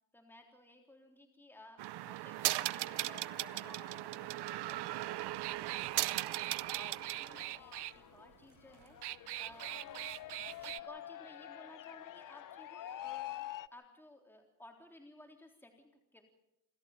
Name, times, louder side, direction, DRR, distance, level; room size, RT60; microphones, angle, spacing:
voice 1, 0.1-5.4 6.1-9.7 10.3-16.2, left 1 dB, 5° left, 2 dB, 3.6 m, -58 dB
sound 1, 1.8-7.9 8.8-10.8, right 16 dB, 60° right, 0.7 m, -38 dB
sound 2, 2.6-13.7, left 13 dB, 45° left, 0.8 m, -49 dB
28.0 x 13.5 x 7.3 m, 0.83 s
cardioid pair, 100°, 46 cm